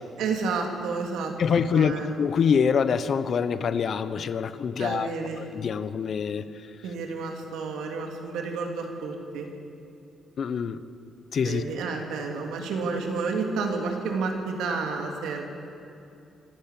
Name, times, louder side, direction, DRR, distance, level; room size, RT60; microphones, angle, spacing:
voice 1, 0.2-1.3 1.7-2.1 4.8-5.5 6.8-9.5 11.4-15.5, right 4 dB, 85° right, 2 dB, 2.9 m, -30 dB
voice 2, 1.4-6.5 10.4-10.8 11.3-11.6, left 6 dB, 60° left, 13 dB, 1.0 m, -25 dB
25.5 x 12.0 x 8.6 m, 2.7 s
supercardioid pair, 60°, 0 cm